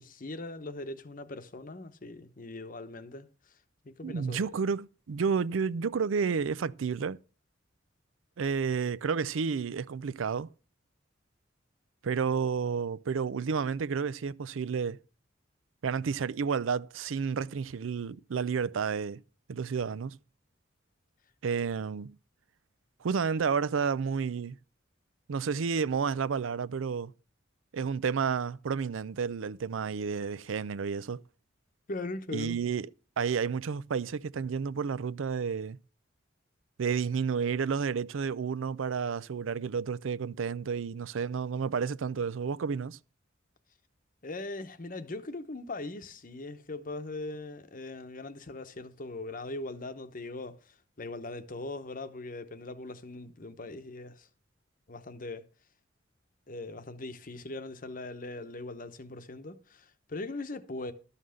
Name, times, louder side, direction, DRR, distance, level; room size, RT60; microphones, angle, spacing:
voice 1, 0.0-3.6 3.8-4.6 31.9-32.6 44.2-54.3 54.9-55.5 56.5-60.9, left 2 dB, 45° left, 0.9 m, -40 dB
voice 2, 4.0-7.2 8.4-10.5 12.0-15.0 15.8-19.2 19.5-20.2 21.4-22.1 23.0-24.6 25.3-27.1 27.7-31.2 32.3-32.9 33.2-35.8 36.8-43.0, right 6 dB, 85° right, 0.5 m, -31 dB
12.5 x 5.7 x 6.4 m
head